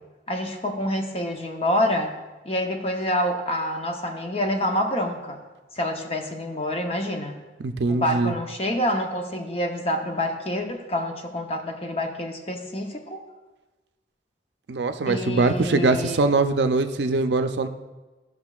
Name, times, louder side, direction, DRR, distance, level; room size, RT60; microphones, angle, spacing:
voice 1, 0.3-2.1 2.4-5.4 5.8-7.3 7.9-13.2 15.1-16.2, left 1 dB, 35° left, 3 dB, 0.8 m, -27 dB
voice 2, 7.6-8.3 14.7-17.7, right 3 dB, 70° right, 8 dB, 0.5 m, -22 dB
15.0 x 6.1 x 2.4 m, 1.2 s
head